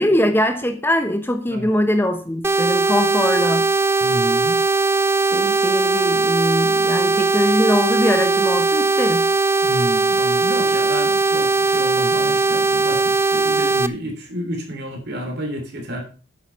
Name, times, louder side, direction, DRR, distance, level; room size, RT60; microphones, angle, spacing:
voice 1, 0.0-3.7 5.3-9.3, left 1 dB, 10° left, 7 dB, 0.9 m, -21 dB
sound 1, 2.4-13.9, right 3 dB, 10° right, 0.4 m, -19 dB
voice 2, 4.0-4.6 9.6-16.0, equal, 55° right, 3 dB, 3.4 m, -30 dB
9.4 x 8.1 x 5.5 m, 0.36 s
head